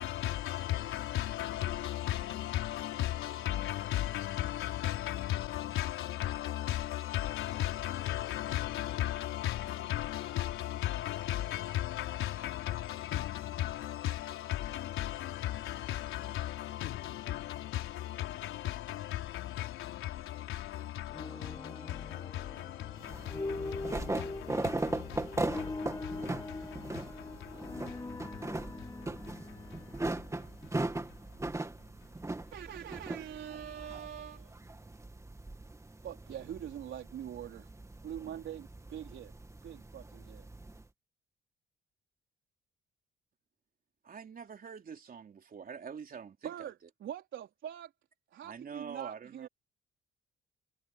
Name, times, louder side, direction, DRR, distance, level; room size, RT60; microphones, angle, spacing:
voice 1, 0.0-31.5 31.8-31.9 32.2-32.4, left 13 dB, 90° left, 4.4 m, -37 dB
sound 1, 21.1-31.2, left 2 dB, 15° left, 1.9 m, -43 dB
sound 2, 23.0-40.8, right 2 dB, 15° right, 2.6 m, -39 dB
voice 2, 32.5-34.6 36.0-37.7 38.0-39.3 39.6-40.5 46.4-47.9 48.3-49.5, right 10 dB, 70° right, 4.2 m, -43 dB
voice 3, 44.1-46.7 48.4-49.5, right 6 dB, 45° right, 3.6 m, -45 dB
cardioid pair, 90°, 20 cm